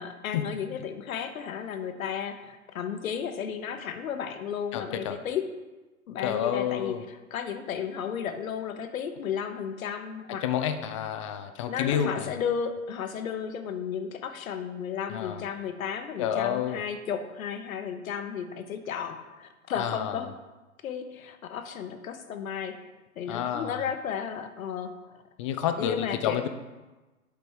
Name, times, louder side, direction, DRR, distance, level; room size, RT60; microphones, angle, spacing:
voice 1, 0.0-5.5 6.1-10.4 11.7-20.3 20.8-22.8 23.2-25.2 25.8-26.4, left 7 dB, 70° left, 9 dB, 1.0 m, -34 dB
voice 2, 4.7-5.2 6.2-7.0 10.4-12.3 15.1-15.4 16.2-16.8 19.8-20.2 23.2-23.8 25.4-26.5, left 9 dB, 25° left, 9 dB, 0.3 m, -29 dB
8.2 x 5.1 x 4.6 m, 1.2 s
hypercardioid pair, 115°, 42 cm